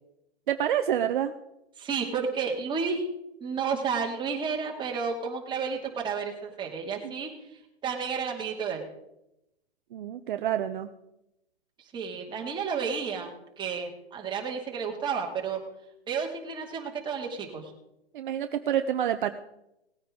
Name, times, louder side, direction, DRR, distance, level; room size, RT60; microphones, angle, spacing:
voice 1, 0.5-1.3 7.0-7.1 9.9-10.9 18.1-19.3, right 10 dB, 55° right, 8 dB, 0.8 m, -28 dB
voice 2, 1.8-3.1 3.4-7.3 7.8-8.9 11.9-15.6 16.1-17.7, right 6 dB, 15° right, 0 dB, 2.4 m, -31 dB
18.5 x 9.3 x 3.8 m, 0.86 s
hypercardioid pair, 135°, 31 cm